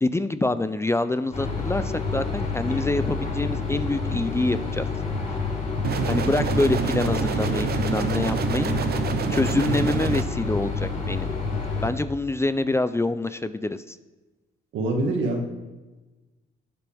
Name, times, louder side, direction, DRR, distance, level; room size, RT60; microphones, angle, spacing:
voice 1, 0.0-4.9 6.1-8.7 9.3-11.3 11.8-14.0, left 2 dB, 15° left, 12 dB, 0.4 m, -26 dB
sound 1, 1.3-11.9, left 4 dB, 40° left, 4.2 m, -28 dB
sound 2, 5.8-10.2, right 7 dB, 55° right, 0.9 m, -27 dB
voice 2, 14.7-15.5, right 2 dB, 80° right, 2 dB, 1.8 m, -25 dB
19.0 x 8.1 x 3.5 m, 1.2 s
cardioid pair, 90°, 20 cm